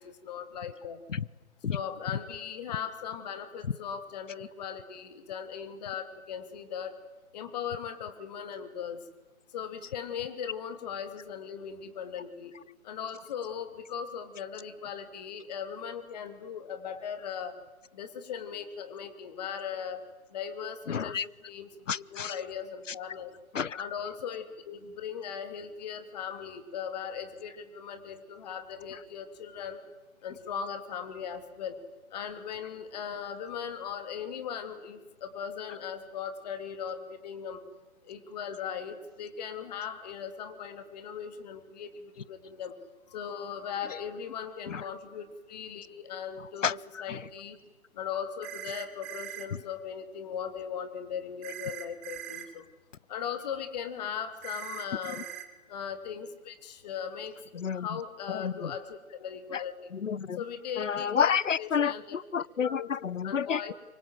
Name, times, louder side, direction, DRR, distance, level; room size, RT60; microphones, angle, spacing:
voice 1, 0.0-1.0 1.7-6.9 7.3-9.0 9.5-12.5 12.8-17.6 17.9-20.1 20.3-23.3 23.8-29.8 30.2-31.8 32.1-37.6 38.0-42.7 43.1-47.6 47.9-52.6 53.1-55.3 55.7-59.9 60.4-62.2 62.6-62.9 63.2-63.7, left 7 dB, 30° left, 9 dB, 3.0 m, -38 dB
voice 2, 20.9-21.3 21.9-22.3 23.5-23.8 44.7-44.8 46.6-46.7 57.6-57.9 58.3-58.7 60.0-60.4 60.8-63.6, left 7 dB, 60° left, 24 dB, 0.9 m, -29 dB
sound 1, 48.4-49.5 51.4-52.5 54.4-55.4, right 11 dB, 15° right, 1.4 m, -41 dB
25.0 x 24.5 x 9.2 m, 1.1 s
figure-of-eight pair, 145°, 42 cm